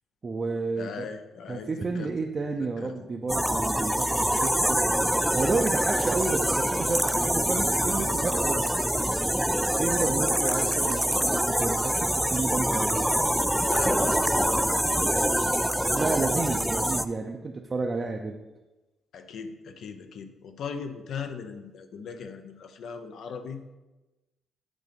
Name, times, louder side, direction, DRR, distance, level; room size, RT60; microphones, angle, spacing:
voice 1, 0.2-1.1 1.5-4.8 5.3-8.7 9.6-13.1 15.9-18.4, right 3 dB, 35° right, 2 dB, 0.6 m, -31 dB
voice 2, 0.8-2.1 2.8-2.9 13.6-14.7 15.3-15.6 16.4-16.7 19.1-23.6, left 5 dB, 70° left, 7 dB, 0.7 m, -39 dB
sound 1, 3.3-17.0, equal, 5° right, 0.3 m, -25 dB
8.4 x 3.8 x 5.2 m, 1.1 s
cardioid pair, 90°, 0 cm